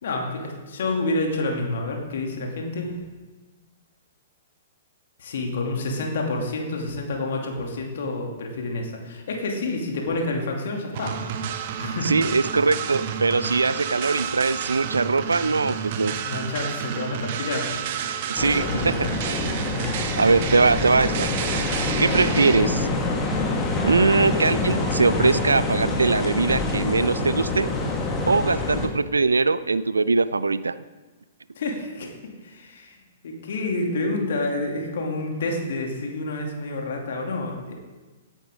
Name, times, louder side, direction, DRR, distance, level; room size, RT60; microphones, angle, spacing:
voice 1, 0.0-2.9 5.2-11.2 11.6-12.1 16.2-17.8 18.6-18.7 20.1-20.2 31.6-32.1 32.4-32.9 33.2-37.7, left 2 dB, 55° left, 1 dB, 2.7 m, -28 dB
sound 1, 10.9-22.6, right 8 dB, 45° right, 0.9 m, -30 dB
voice 2, 12.0-16.1 18.3-19.5 20.2-21.3 22.0-22.9 23.8-27.7 28.3-30.7, right 4 dB, 75° right, 16 dB, 0.4 m, -21 dB
sound 2, 18.4-28.9, left 2 dB, 15° left, 2.0 m, -26 dB
16.5 x 9.1 x 3.7 m, 1.2 s
figure-of-eight pair, 110°, 0 cm